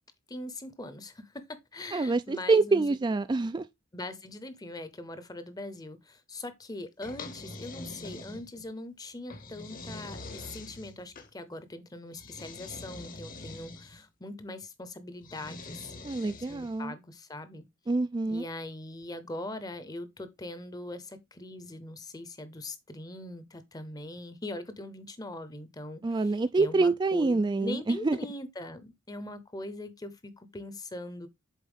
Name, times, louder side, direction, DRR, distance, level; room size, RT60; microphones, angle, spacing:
voice 1, 0.3-3.0 3.9-15.9 16.5-17.6 18.3-31.3, left 2 dB, 20° left, 0.8 m, -41 dB
voice 2, 1.9-3.7 16.0-16.9 17.9-18.4 26.0-28.2, right 3 dB, 20° right, 0.3 m, -26 dB
sound 1, 7.0-8.7 9.3-11.3 12.1-14.0 15.2-16.8, left 2 dB, 45° left, 1.1 m, -44 dB
7.2 x 4.2 x 3.5 m
head